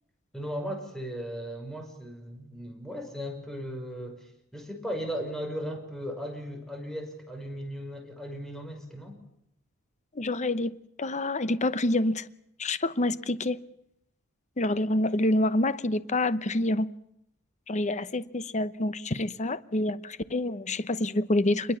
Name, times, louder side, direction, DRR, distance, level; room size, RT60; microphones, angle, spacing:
voice 1, 0.3-9.2, equal, ahead, 6.0 m, -37 dB
voice 2, 10.1-12.3 12.6-13.6 14.6-16.9 17.7-21.8, left 1 dB, 35° left, 0.9 m, -27 dB
27.5 x 22.0 x 7.2 m
head